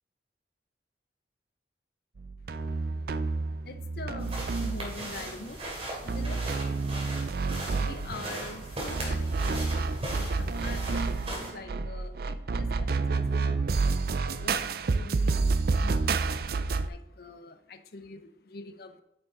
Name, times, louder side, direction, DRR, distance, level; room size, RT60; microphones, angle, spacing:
sound 1, 2.2-5.3 6.1-16.9, right 4 dB, 60° right, 0.4 m, -29 dB
voice 1, 2.6-5.7 6.0-14.0 14.3-16.4 16.8-19.0, left 3 dB, 60° left, 9 dB, 0.7 m, -46 dB
sound 2, 4.2-11.5, right 1 dB, 35° right, 2.6 m, -38 dB
9.1 x 6.5 x 3.8 m, 0.87 s
head